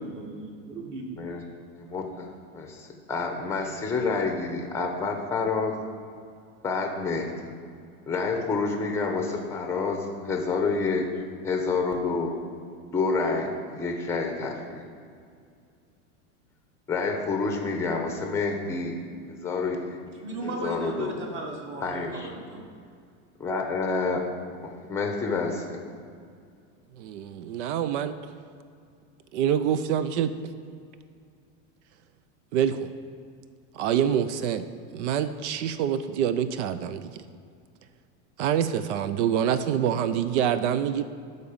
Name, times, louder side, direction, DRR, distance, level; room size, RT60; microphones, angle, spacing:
voice 1, 0.0-1.0 20.2-22.6, right 2 dB, 30° right, 1 dB, 1.4 m, -36 dB
voice 2, 1.7-2.3 2.5-5.8 6.6-7.3 8.1-11.0 11.4-12.4 12.9-14.8 16.9-19.0 19.3-20.0 20.4-21.2 21.8-22.3 23.4-24.2 24.6-25.8, left 4 dB, 5° left, 3 dB, 0.7 m, -28 dB
voice 3, 27.0-28.1 29.3-30.3 32.5-32.9 33.7-34.6 34.9-37.2 38.4-41.0, right 9 dB, 70° right, 12 dB, 0.6 m, -26 dB
11.5 x 4.1 x 7.2 m, 2.3 s
supercardioid pair, 160°, 37 cm